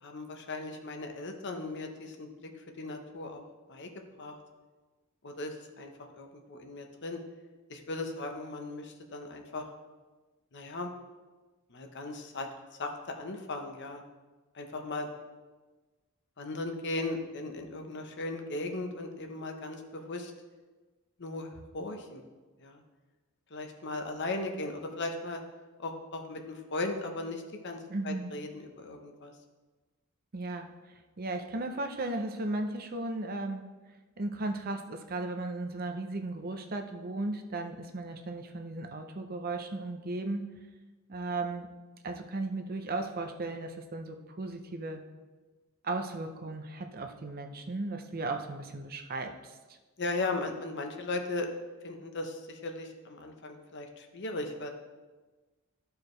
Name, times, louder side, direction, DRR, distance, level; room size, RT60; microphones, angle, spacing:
voice 1, 0.0-2.5 2.8-3.4 3.7-3.9 4.2-4.4 5.2-5.9 6.2-7.2 7.7-9.7 10.5-10.9 11.7-12.5 12.8-14.0 14.5-15.1 16.4-20.3 21.2-22.2 22.6-22.8 23.5-25.4 25.8-27.8 28.0-29.3 50.0-51.5 51.8-54.7, left 2 dB, 55° left, 4 dB, 0.9 m, -37 dB
voice 2, 27.9-28.3 30.3-30.7 31.2-33.6 34.2-40.5 41.1-41.7 42.0-45.0 45.8-49.6, right 2 dB, 45° right, 6 dB, 0.7 m, -36 dB
13.5 x 4.8 x 3.2 m, 1.3 s
head